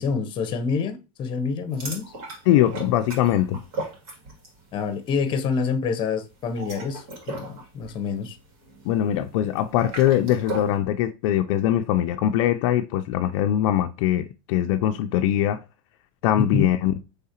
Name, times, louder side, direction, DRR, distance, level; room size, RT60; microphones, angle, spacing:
voice 1, 0.0-2.1 4.7-8.4 16.5-16.7, left 5 dB, 30° left, 0.7 m, -27 dB
sound 1, 1.7-4.6 4.9-5.2 6.4-10.8, right 1 dB, 75° right, 2.3 m, -37 dB
voice 2, 2.5-3.6 8.9-15.6 16.2-17.0, left 11 dB, 60° left, 0.4 m, -22 dB
4.7 x 3.3 x 2.8 m
supercardioid pair, 145°, 17 cm